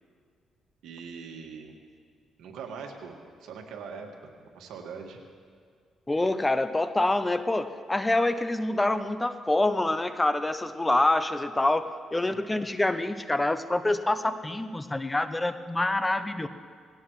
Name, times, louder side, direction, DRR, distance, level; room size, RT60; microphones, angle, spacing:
voice 1, 0.8-1.7 2.4-5.2, right 5 dB, 85° right, 2 dB, 1.9 m, -42 dB
voice 2, 6.1-16.5, left 2 dB, 15° left, 11 dB, 0.7 m, -26 dB
19.5 x 17.0 x 3.2 m, 2.1 s
cardioid pair, 90°, 0 cm